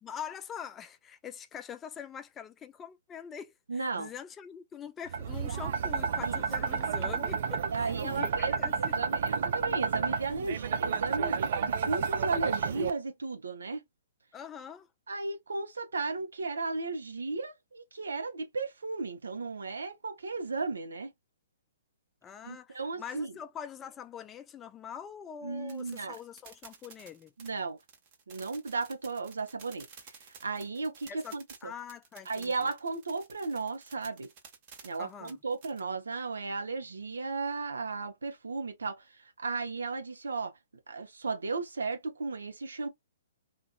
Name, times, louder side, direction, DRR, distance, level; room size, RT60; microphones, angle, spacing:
voice 1, 0.0-8.7 14.3-14.9 22.2-27.3 31.1-32.7 35.0-35.4, left 8 dB, 20° left, 0.3 m, -44 dB
voice 2, 3.7-4.1 6.2-6.4 7.7-13.8 15.1-21.1 22.4-23.3 25.4-26.2 27.4-27.8 28.3-29.9 30.3-31.7 32.3-34.3 34.8-40.5 40.9-42.9, right 3 dB, 80° right, 0.9 m, -35 dB
sound 1, 5.1-12.9, right 6 dB, 55° right, 0.4 m, -31 dB
sound 2, 25.7-35.8, right 6 dB, 40° right, 0.9 m, -53 dB
2.6 x 2.5 x 2.2 m
hypercardioid pair, 125°, 0 cm